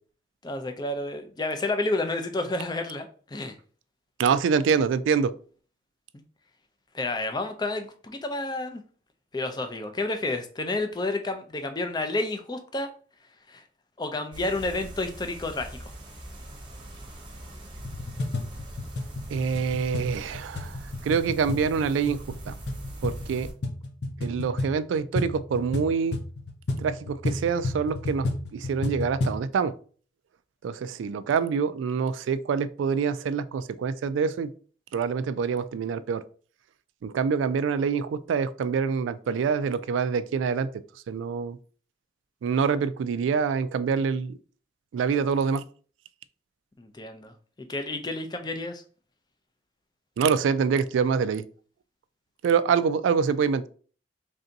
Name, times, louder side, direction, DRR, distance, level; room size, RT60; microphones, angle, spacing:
voice 1, 0.4-3.5 6.9-8.8 9.3-12.9 13.5-13.6 14.0-15.9 46.8-47.3 47.7-48.8, left 2 dB, 20° left, 0.4 m, -30 dB
voice 2, 4.2-5.3 19.3-20.8 21.0-22.5 23.0-23.5 24.2-26.2 26.8-28.3 28.5-29.7 30.6-34.5 34.9-36.2 37.0-40.7 41.1-41.6 42.4-44.3 44.9-45.6 50.2-51.4 52.4-53.7, right 6 dB, 85° right, 0.3 m, -25 dB
sound 1, 14.3-23.5, right 1 dB, 25° right, 0.8 m, -42 dB
sound 2, 17.8-29.5, left 2 dB, 60° left, 0.7 m, -32 dB
3.3 x 2.6 x 3.9 m
head